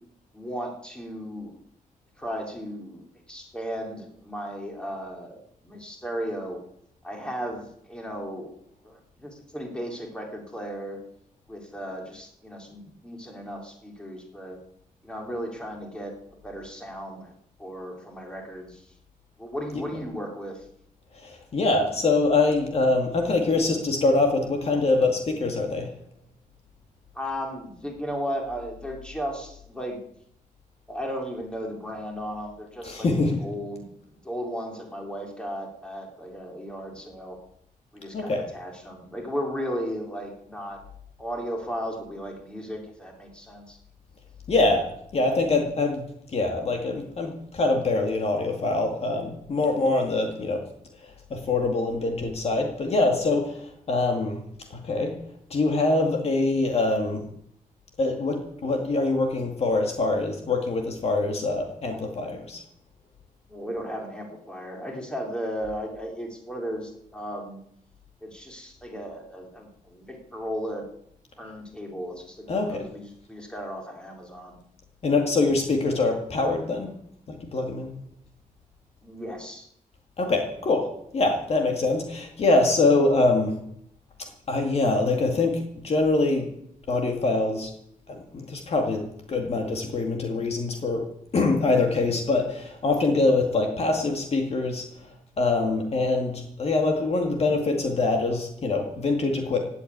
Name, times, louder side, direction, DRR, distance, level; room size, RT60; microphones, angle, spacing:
voice 1, 0.3-1.5 2.2-5.4 5.6-6.6 7.0-8.5 8.8-11.0 11.5-14.6 15.0-16.1 16.4-17.3 17.6-18.8 19.4-20.6 27.1-30.0 30.9-33.9 34.2-37.4 37.9-40.8 41.2-43.8 63.5-67.6 68.2-70.9 71.4-74.6 79.0-79.7, equal, 5° left, 1 dB, 3.4 m, -35 dB
voice 2, 21.1-25.9 32.8-33.4 38.1-38.5 44.5-46.1 46.3-50.7 51.0-54.4 54.7-55.2 55.5-57.2 58.0-62.6 72.5-72.8 75.0-76.9 77.3-77.9 80.2-83.6 84.2-86.5 86.9-87.7 88.1-91.1 91.3-94.9 95.4-99.6, left 3 dB, 45° left, 3 dB, 2.2 m, -24 dB
17.0 x 8.5 x 9.5 m, 0.72 s
wide cardioid pair, 175°, 14 cm